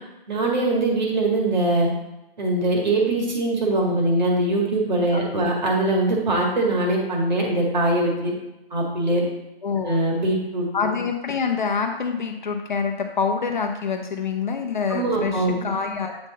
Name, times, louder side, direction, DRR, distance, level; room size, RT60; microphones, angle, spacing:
voice 1, 0.3-1.9 2.4-8.3 8.7-9.2 9.8-10.7 14.9-15.7, right 2 dB, 45° right, -1 dB, 1.9 m, -22 dB
voice 2, 9.6-10.0 10.7-16.2, left 5 dB, 50° left, 4 dB, 0.9 m, -26 dB
8.0 x 3.8 x 4.0 m, 0.95 s
hypercardioid pair, 165°, 30 cm